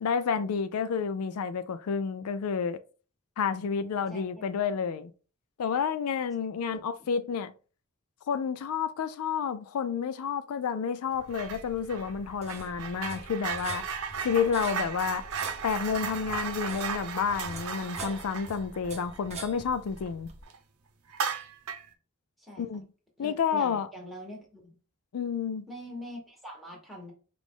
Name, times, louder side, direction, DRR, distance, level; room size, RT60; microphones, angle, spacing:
voice 1, 0.0-2.8 3.4-5.1 5.6-7.5 8.3-13.8 14.2-15.2 15.6-20.3 22.6-22.8 23.2-23.9 25.1-25.7, left 6 dB, 75° left, 0.4 m, -30 dB
voice 2, 4.1-4.7 6.7-6.8 22.4-22.7 23.2-24.8 25.7-27.1, equal, ahead, 1.4 m, -44 dB
sound 1, 11.1-20.4, right 2 dB, 30° right, 0.8 m, -45 dB
sound 2, 11.3-11.6 11.9-20.1 20.4-20.6 21.1-21.9, right 6 dB, 75° right, 0.7 m, -36 dB
4.9 x 2.5 x 3.6 m
head